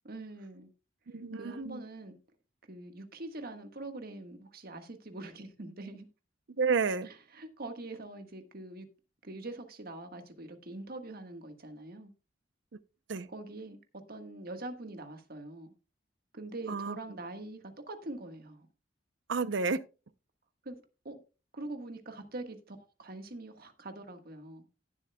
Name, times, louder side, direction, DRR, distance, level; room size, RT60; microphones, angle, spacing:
voice 1, 0.0-0.7 1.3-2.2 2.7-6.0 7.3-8.9 9.2-12.1 13.3-13.8 14.1-15.7 16.3-18.7 20.6-21.2 21.5-24.6, right 2 dB, 55° right, 1.5 m, -43 dB
voice 2, 1.1-1.8 6.6-7.1 12.7-12.8 13.1-13.3 16.7-17.0 19.3-19.8, right 5 dB, 70° right, 0.6 m, -31 dB
17.5 x 7.6 x 2.3 m
head